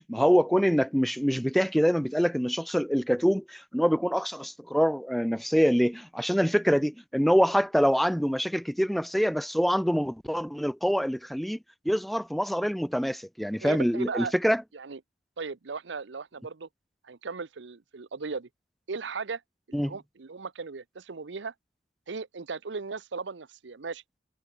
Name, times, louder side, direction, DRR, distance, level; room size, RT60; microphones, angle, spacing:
voice 1, 0.1-11.6 11.8-14.6 19.7-19.9, equal, ahead, 0.7 m, -25 dB
voice 2, 13.6-14.3 14.7-15.0 15.4-16.7 17.0-18.5 18.9-19.4 19.7-21.5 22.1-24.0, right 4 dB, 75° right, 0.7 m, -37 dB
head